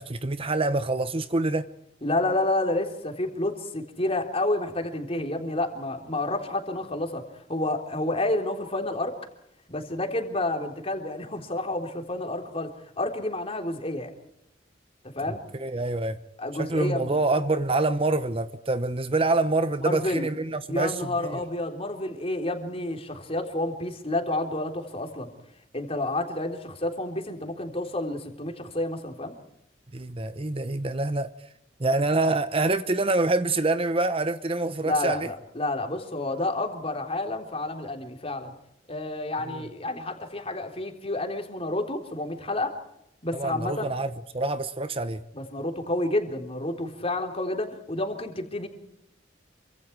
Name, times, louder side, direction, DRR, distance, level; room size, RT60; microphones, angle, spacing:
voice 1, 0.0-1.7 15.3-16.2 16.6-21.4 29.9-31.3 31.8-35.3 43.3-45.2, right 2 dB, 30° right, 12 dB, 0.9 m, -26 dB
voice 2, 2.0-7.2 7.5-9.2 9.7-12.7 13.0-14.1 15.0-15.4 16.4-17.2 19.8-20.3 20.7-25.3 25.7-29.4 34.8-38.5 38.9-42.8 43.2-43.9 45.3-48.7, left 2 dB, 30° left, 4 dB, 3.7 m, -29 dB
27.5 x 25.5 x 4.7 m, 0.79 s
head